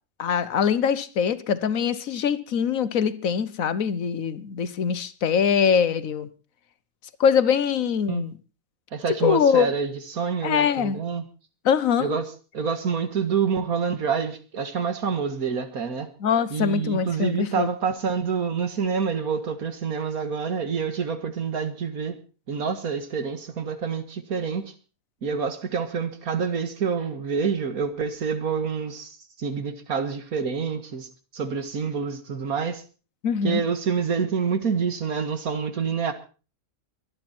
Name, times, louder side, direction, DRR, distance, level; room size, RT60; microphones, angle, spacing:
voice 1, 0.2-6.3 7.2-8.3 9.2-9.7 10.4-11.0 11.6-12.1 16.2-17.7 33.2-33.6, left 7 dB, 70° left, 1.4 m, -23 dB
voice 2, 8.9-11.2 12.0-12.3 12.5-16.1 16.5-22.2 22.5-24.7 25.2-32.8 33.4-36.1, right 6 dB, 85° right, 2.1 m, -27 dB
23.5 x 9.7 x 4.3 m
omnidirectional pair, 1.5 m